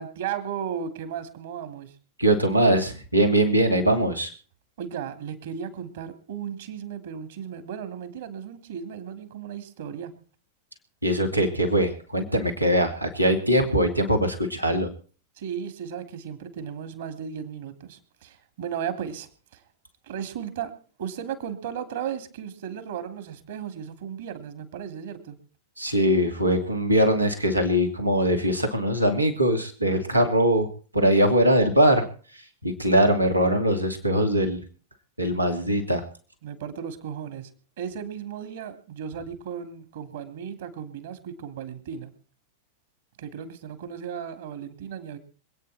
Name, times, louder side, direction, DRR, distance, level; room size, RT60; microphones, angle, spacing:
voice 1, 0.0-1.9 4.8-10.1 15.4-19.6 20.1-25.4 36.4-37.5 37.8-42.1 43.2-45.2, right 8 dB, 60° right, 10 dB, 3.2 m, -35 dB
voice 2, 2.2-4.3 11.0-14.9 25.8-30.7 30.9-32.1 32.6-34.6 35.2-36.0, equal, 85° right, 4 dB, 2.6 m, -21 dB
26.5 x 9.5 x 4.4 m, 0.42 s
figure-of-eight pair, 90°, 0 cm